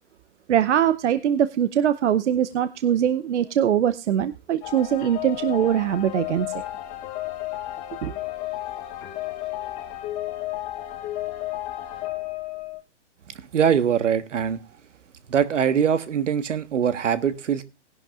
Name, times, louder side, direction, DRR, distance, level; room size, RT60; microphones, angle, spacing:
voice 1, 0.5-6.5 8.0-8.1, right 10 dB, 70° right, 0.8 m, -22 dB
sound 1, 4.6-12.8, left 15 dB, 20° left, 1.1 m, -33 dB
voice 2, 13.5-14.6 15.3-17.6, right 8 dB, 85° right, 1.4 m, -22 dB
19.0 x 11.0 x 2.5 m
hypercardioid pair, 160°, 36 cm